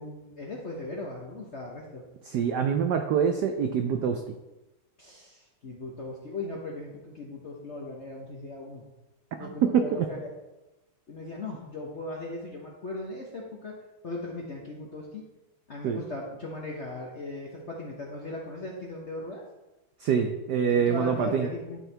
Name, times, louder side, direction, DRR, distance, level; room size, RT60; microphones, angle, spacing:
voice 1, 0.0-2.0 5.0-8.8 9.4-10.3 11.1-13.7 14.0-15.2 15.7-19.4 20.7-21.8, left 2 dB, 55° left, -2 dB, 0.8 m, -38 dB
voice 2, 2.2-4.2 9.4-10.1 15.8-16.0 20.0-21.5, right 7 dB, 80° right, 6 dB, 0.9 m, -25 dB
12.0 x 4.5 x 3.3 m, 1.0 s
omnidirectional pair, 2.4 m